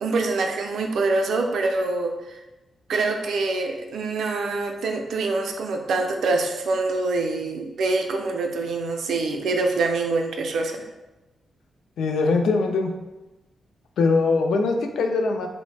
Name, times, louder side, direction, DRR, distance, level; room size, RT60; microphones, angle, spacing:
voice 1, 0.0-2.1 2.9-10.8, right 3 dB, 65° right, 3 dB, 0.3 m, -25 dB
voice 2, 12.0-12.9 14.0-15.5, left 3 dB, 85° left, 5 dB, 0.3 m, -21 dB
3.2 x 2.0 x 3.2 m, 1.1 s
wide cardioid pair, 180°, 0 cm